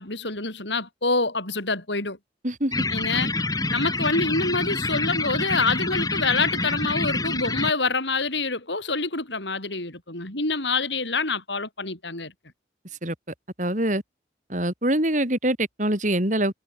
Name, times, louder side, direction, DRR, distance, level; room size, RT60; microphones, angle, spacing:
voice 1, 0.0-2.2 2.9-3.3 3.7-12.3, left 3 dB, 80° left, 7.6 m, -26 dB
sound 1, 2.7-7.7, left 2 dB, 20° left, 2.5 m, -27 dB
voice 2, 13.6-14.0 14.5-16.5, right 1 dB, 45° right, 5.7 m, -24 dB
head